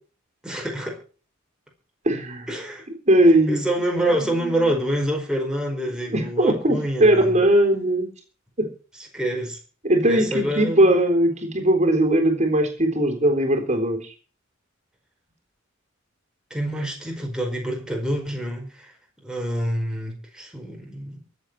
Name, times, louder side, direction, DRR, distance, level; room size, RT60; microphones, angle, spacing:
voice 1, 0.4-1.0 2.5-2.8 3.5-7.4 9.1-9.6 10.0-10.9 16.5-18.9 19.2-21.2, right 1 dB, 5° right, 1 dB, 4.9 m, -27 dB
voice 2, 2.1-2.5 3.1-3.6 4.2-4.9 6.1-8.1 8.6-8.7 9.8-14.0, right 1 dB, 35° right, 4 dB, 3.7 m, -19 dB
23.5 x 8.0 x 4.8 m, 0.38 s
head